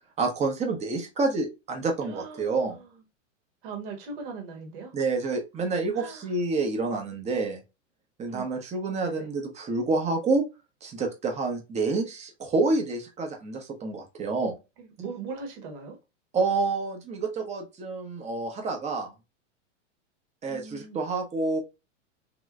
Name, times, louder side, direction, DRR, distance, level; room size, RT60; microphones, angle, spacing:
voice 1, 0.2-2.7 4.9-7.6 8.2-10.4 10.8-14.5 16.3-19.1 20.4-21.6, right 3 dB, 20° right, 0.8 m, -28 dB
voice 2, 2.0-3.0 3.6-5.0 5.9-6.3 8.3-8.6 9.0-9.3 14.8-16.0 20.5-21.0, right 4 dB, 50° right, 1.2 m, -40 dB
3.1 x 2.9 x 2.3 m
hypercardioid pair, 130°, 37 cm